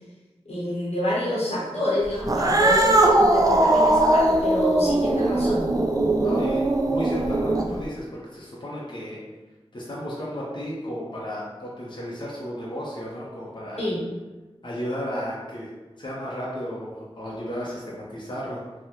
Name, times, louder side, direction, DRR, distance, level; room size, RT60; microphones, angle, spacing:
voice 1, 0.5-5.6 13.8-14.0, equal, 80° left, -5 dB, 0.9 m, -27 dB
Cat, 2.2-7.8, right 1 dB, 35° right, 0.3 m, -20 dB
voice 2, 6.2-9.2 9.7-13.8 14.6-15.7 16.0-18.6, equal, 50° left, -6 dB, 0.6 m, -33 dB
3.5 x 2.1 x 2.9 m, 1.2 s
wide cardioid pair, 55°, 11 cm